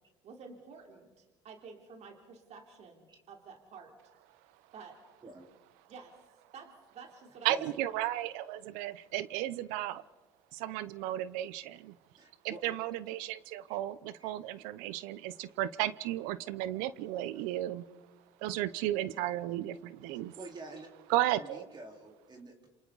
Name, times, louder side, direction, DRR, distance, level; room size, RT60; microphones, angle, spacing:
voice 1, 0.2-3.9 4.7-5.0 5.9-6.1 6.5-7.6, right 5 dB, 55° right, 2 dB, 3.2 m, -50 dB
voice 2, 7.4-10.0 10.5-11.9 12.4-17.8 18.4-20.4 21.1-21.7, right 14 dB, 75° right, 16 dB, 0.8 m, -34 dB
voice 3, 12.2-12.7 13.7-13.8 14.2-14.3 20.4-20.9 21.4-22.7, right 2 dB, 30° right, 1 dB, 4.1 m, -47 dB
27.5 x 27.5 x 4.1 m, 1.2 s
hypercardioid pair, 75°, 14 cm